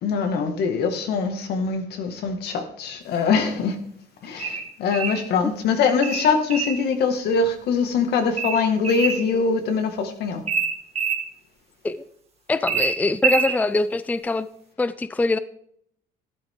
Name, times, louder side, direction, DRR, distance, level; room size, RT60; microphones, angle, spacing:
voice 1, 0.0-3.8 4.2-10.4, left 5 dB, 75° left, 6 dB, 2.0 m, -23 dB
sound 1, 4.4-5.2 6.0-6.8 8.4-9.2 10.5-11.2 12.7-13.6, right 5 dB, 35° right, 2.3 m, -25 dB
voice 2, 12.5-14.5 14.8-15.4, left 3 dB, 10° left, 14 dB, 0.5 m, -23 dB
12.5 x 12.0 x 3.8 m, 0.69 s
cardioid pair, 110°, 17 cm